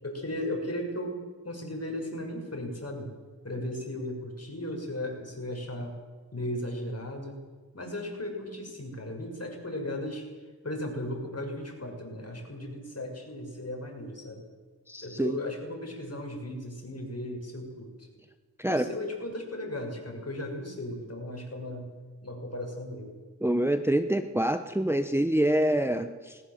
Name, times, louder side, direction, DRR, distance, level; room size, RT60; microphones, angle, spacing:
voice 1, 0.0-1.2 1.4-3.1 3.4-5.9 6.3-7.4 7.7-10.3 10.6-14.4 15.0-18.1 18.6-21.9 22.2-23.1, left 1 dB, 45° left, 1 dB, 6.5 m, -36 dB
voice 2, 14.9-15.4 18.6-18.9 23.4-26.4, right 1 dB, 5° right, 8 dB, 1.0 m, -26 dB
20.5 x 19.5 x 7.6 m, 1.5 s
wide cardioid pair, 55°, 36 cm